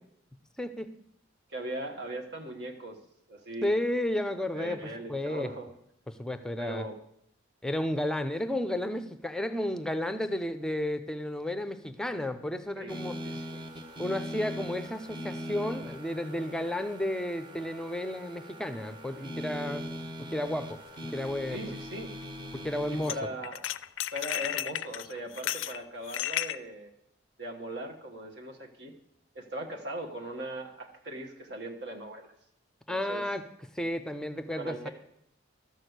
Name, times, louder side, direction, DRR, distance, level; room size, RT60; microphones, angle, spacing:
voice 1, 0.6-0.9 3.6-4.8 5.1-5.5 6.1-6.9 7.6-13.2 14.0-19.9 20.2-20.8 21.1-21.6 22.5-23.2 32.9-33.4 33.7-34.9, left 1 dB, 5° left, 10 dB, 0.6 m, -32 dB
voice 2, 1.5-3.0 3.3-3.7 4.5-5.7 6.6-6.9 12.7-13.6 21.5-22.1 22.9-23.7 24.1-26.9 27.4-28.9 29.3-32.3 32.9-33.2 34.6-34.9, right 1 dB, 60° right, 2 dB, 1.4 m, -39 dB
sound 1, 12.9-23.1, equal, 25° right, 1.1 m, -41 dB
sound 2, 20.9-21.0 23.0-23.2 23.4-26.6, left 12 dB, 80° left, 0.4 m, -33 dB
13.0 x 6.4 x 8.0 m, 0.74 s
head